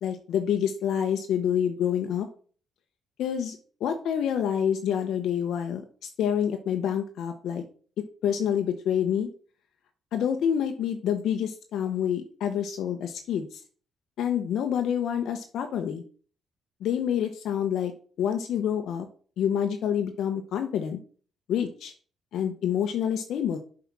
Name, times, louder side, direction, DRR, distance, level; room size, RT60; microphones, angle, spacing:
voice 1, 0.0-2.3 3.2-3.6 3.8-5.8 6.2-7.6 8.2-9.3 10.1-13.5 14.2-16.0 16.8-17.9 18.2-19.1 19.4-21.0 21.5-21.9 22.3-23.6, left 9 dB, 75° left, 6 dB, 1.0 m, -27 dB
7.3 x 5.0 x 6.0 m, 0.43 s
cardioid pair, 90°, 0 cm